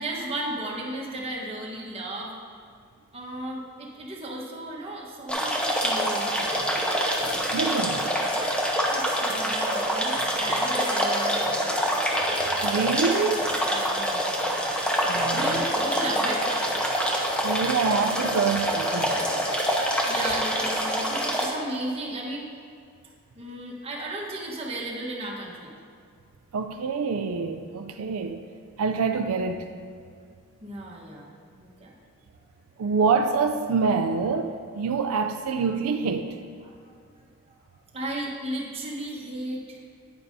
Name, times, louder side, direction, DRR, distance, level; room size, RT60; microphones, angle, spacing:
voice 1, 0.0-2.3 3.1-6.7 8.9-11.8 13.7-14.3 15.3-16.8 19.5-22.5 23.0-25.8 28.0-28.3 30.6-31.3 31.6-32.0 36.6-36.9 37.9-39.8, right 1 dB, 25° right, -3 dB, 1.2 m, -35 dB
sound 1, 5.3-21.5, equal, 5° left, 0.7 m, -26 dB
voice 2, 7.5-8.0 12.6-13.5 15.0-15.8 17.4-19.2 26.5-28.4 28.8-29.6 32.8-36.3, right 5 dB, 85° right, 6 dB, 0.4 m, -26 dB
9.5 x 8.7 x 2.7 m, 2.2 s
head